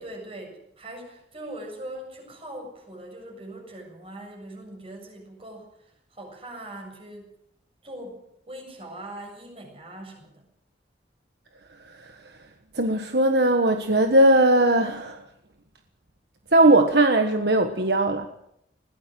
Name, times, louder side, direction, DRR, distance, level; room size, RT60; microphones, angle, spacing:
voice 1, 0.0-7.3 7.8-10.5, right 1 dB, 30° right, 3 dB, 7.4 m, -41 dB
voice 2, 12.7-15.2 16.5-18.3, right 1 dB, 65° right, 6 dB, 1.5 m, -19 dB
21.5 x 17.0 x 7.7 m, 0.77 s
head